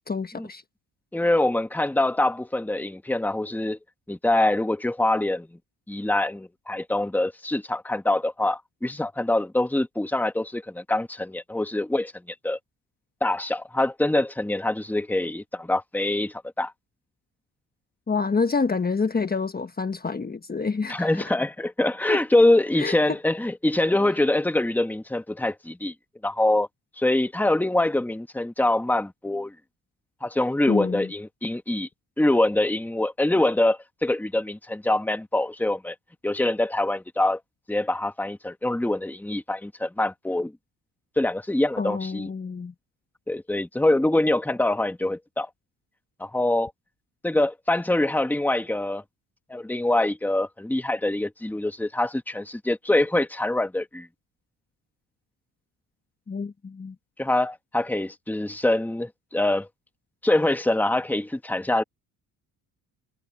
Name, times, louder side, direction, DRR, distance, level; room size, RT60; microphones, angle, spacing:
voice 1, 0.1-0.6 18.1-21.2 22.1-22.2 22.8-22.9 30.7-31.1 41.8-42.7 56.3-56.9, left 4 dB, 25° left, 1.3 m, -27 dB
voice 2, 1.1-3.8 4.1-5.5 5.9-12.1 12.4-12.6 13.2-16.7 20.9-25.9 26.2-26.7 27.0-29.5 30.2-31.9 32.2-35.9 36.2-37.4 37.7-40.5 41.2-42.3 43.3-45.5 46.2-46.7 47.2-49.0 49.5-54.1 57.2-59.7 60.2-61.8, left 1 dB, 5° left, 1.4 m, -24 dB
cardioid pair, 100°, 38 cm